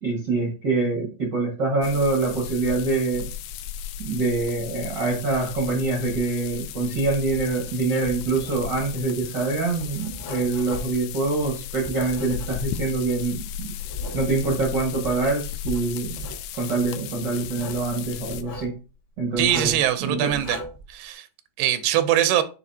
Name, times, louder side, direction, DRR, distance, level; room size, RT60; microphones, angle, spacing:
voice 1, 0.0-3.3 4.0-13.7 14.1-16.1 16.5-18.7 19.2-20.3, right 3 dB, 70° right, 1.0 m, -25 dB
sound 1, 1.8-18.4, left 9 dB, 80° left, 2.2 m, -36 dB
Writing, 7.3-13.0 13.5-15.3 15.6-16.4 17.4-17.9 18.3-18.7 19.4-19.9 20.3-20.9, left 1 dB, 55° left, 1.4 m, -39 dB
voice 2, 19.4-20.6 20.9-21.3 21.6-22.4, right 11 dB, 90° right, 2.8 m, -22 dB
8.2 x 4.6 x 2.7 m
omnidirectional pair, 4.6 m